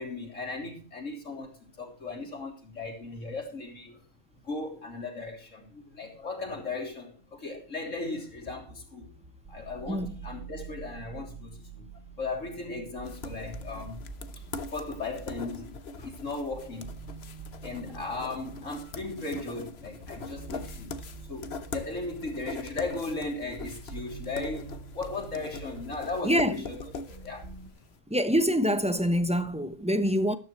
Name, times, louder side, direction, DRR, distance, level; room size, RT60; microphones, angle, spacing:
voice 1, 0.0-4.0 4.4-9.1 9.5-11.9 12.2-14.0 14.7-16.9 17.6-26.8 27.1-27.5, left 3 dB, 75° left, 3.6 m, -37 dB
sound 1, 8.3-27.7, right 5 dB, 60° right, 2.3 m, -46 dB
sound 2, 13.0-27.9, left 4 dB, 55° left, 1.1 m, -42 dB
voice 2, 26.2-26.6 28.1-30.3, equal, 5° right, 0.9 m, -25 dB
13.5 x 12.5 x 3.2 m
omnidirectional pair, 1.3 m